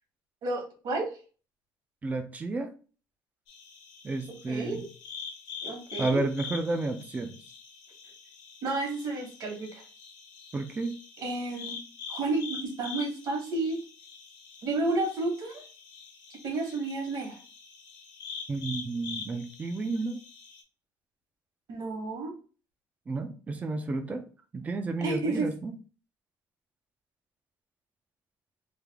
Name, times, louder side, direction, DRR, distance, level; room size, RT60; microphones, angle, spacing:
voice 1, 0.4-1.1 4.3-4.9 5.6-6.3 8.6-9.8 11.2-11.7 12.1-12.4 12.8-13.8 14.6-15.6 16.4-17.4 21.7-22.4 25.0-25.5, right 2 dB, 55° right, 2 dB, 1.4 m, -31 dB
voice 2, 2.0-2.7 4.0-4.8 6.0-7.4 10.5-11.0 18.5-20.2 23.1-24.2 24.5-25.7, right 3 dB, 20° right, 6 dB, 0.5 m, -31 dB
sound 1, 3.5-20.6, left 6 dB, 75° left, 1.1 m, -44 dB
3.4 x 2.4 x 3.5 m, 0.36 s
cardioid pair, 155°, 8 cm